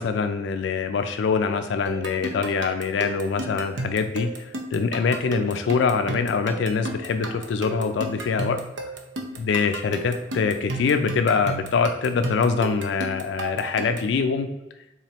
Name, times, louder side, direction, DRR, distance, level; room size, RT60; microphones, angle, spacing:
voice 1, 0.0-8.6 9.4-14.5, left 5 dB, 80° left, 8 dB, 0.3 m, -24 dB
sound 1, 1.9-14.2, right 2 dB, 80° right, 0.6 m, -34 dB
3.9 x 3.0 x 4.2 m, 0.99 s
head